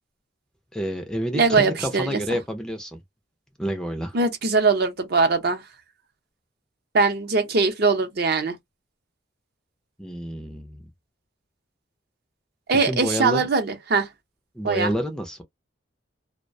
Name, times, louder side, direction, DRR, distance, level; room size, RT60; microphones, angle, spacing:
voice 1, 0.7-3.0 3.6-4.2 10.0-10.8 12.7-13.5 14.6-15.4, equal, 5° left, 0.4 m, -29 dB
voice 2, 1.3-2.2 4.1-5.6 6.9-8.6 12.7-14.1 14.6-14.9, right 4 dB, 55° right, 0.6 m, -21 dB
2.3 x 2.1 x 2.5 m
head